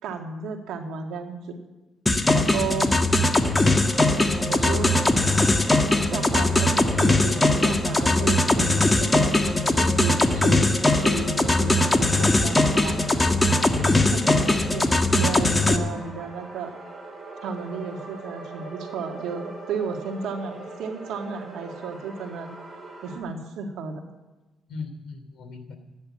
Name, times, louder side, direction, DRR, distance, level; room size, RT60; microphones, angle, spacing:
voice 1, 0.0-1.6 2.3-2.9 4.5-4.9 6.1-13.0 13.9-16.7 17.4-22.5 23.0-24.1, right 5 dB, 85° right, 4 dB, 2.0 m, -33 dB
sound 1, 2.1-15.8, left 2 dB, 15° left, 1.3 m, -20 dB
sound 2, 3.4-23.2, right 2 dB, 25° right, 5.7 m, -39 dB
voice 2, 24.7-25.8, left 4 dB, 60° left, 6 dB, 2.9 m, -40 dB
13.5 x 10.5 x 8.5 m, 1.1 s
cardioid pair, 90°, 0 cm